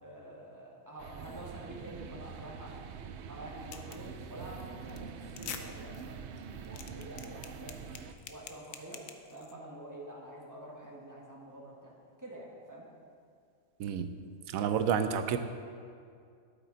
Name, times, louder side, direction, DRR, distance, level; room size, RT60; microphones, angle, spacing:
voice 1, 0.0-2.8 3.3-6.2 6.7-7.8 8.3-9.0 9.3-11.9 12.2-12.9 14.5-14.7, right 1 dB, 15° right, -3 dB, 1.5 m, -47 dB
sound 1, 1.0-8.1, right 6 dB, 65° right, 0.8 m, -45 dB
sound 2, 3.7-4.1 4.4-4.6 4.9-5.0 5.3-5.6 5.9-6.0 6.4-9.5, left 8 dB, 80° left, 1.1 m, -44 dB
voice 2, 14.5-15.4, right 8 dB, 90° right, 9 dB, 1.1 m, -29 dB
12.0 x 8.5 x 4.0 m, 2.3 s
omnidirectional pair, 1.4 m